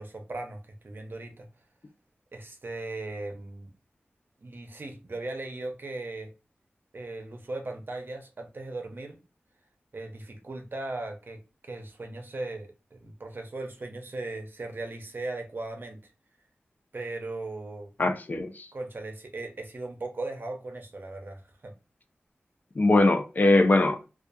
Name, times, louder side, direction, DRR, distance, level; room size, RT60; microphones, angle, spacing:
voice 1, 0.0-1.5 2.3-3.7 4.4-6.3 6.9-9.2 9.9-16.0 16.9-17.9 18.7-21.7, right 2 dB, 55° right, 0.6 m, -38 dB
voice 2, 18.0-18.7 22.8-24.1, left 2 dB, 45° left, 0.4 m, -22 dB
2.3 x 2.2 x 2.6 m
wide cardioid pair, 65°, 4 cm